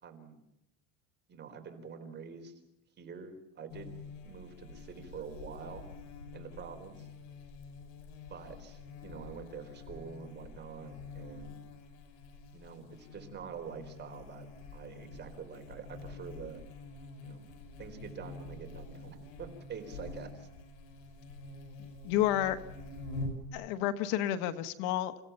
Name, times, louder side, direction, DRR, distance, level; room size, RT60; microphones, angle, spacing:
voice 1, 0.0-0.4 1.3-2.5 3.0-5.8 6.3-7.1 8.3-11.6 12.5-16.6 17.2-17.4 17.8-20.5, right 6 dB, 25° right, 5 dB, 4.2 m, -46 dB
Buzz, 3.7-23.5, left 3 dB, 85° left, 6.5 m, -47 dB
voice 2, 22.0-22.6 23.5-25.2, left 12 dB, 65° left, 10 dB, 1.6 m, -30 dB
30.0 x 16.5 x 5.7 m, 0.88 s
supercardioid pair, 135°, 37 cm